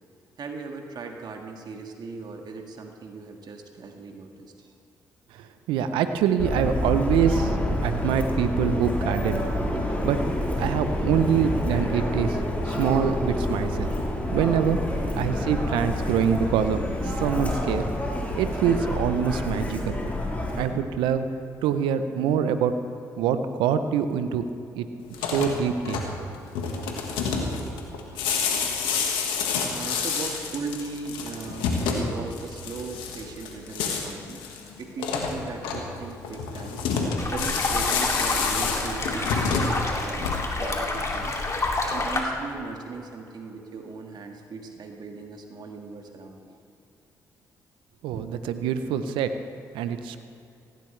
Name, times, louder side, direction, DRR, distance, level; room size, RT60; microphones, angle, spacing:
voice 1, 0.4-4.7 27.7-27.8 28.1-28.3 28.8-29.3 29.7-34.5 34.8-36.8 37.3-41.4 41.9-46.6, right 4 dB, 55° right, 3 dB, 1.8 m, -38 dB
voice 2, 5.3-7.6 7.8-9.4 10.0-10.2 10.6-12.4 12.6-13.9 14.3-14.8 15.2-17.9 18.3-20.0 20.5-21.3 21.6-22.7 23.2-24.4 24.8-24.9 25.2-26.0 48.0-49.3 49.7-50.2, right 8 dB, 80° right, 10 dB, 0.8 m, -25 dB
Subway metro underground, 6.4-20.6, left 1 dB, 20° left, 4.2 m, -28 dB
sound 1, 25.0-40.7, left 5 dB, 80° left, 1.7 m, -29 dB
sound 2, 37.2-42.2, left 2 dB, 40° left, 2.8 m, -28 dB
18.0 x 16.0 x 3.3 m, 2.6 s
hypercardioid pair, 45°, 8 cm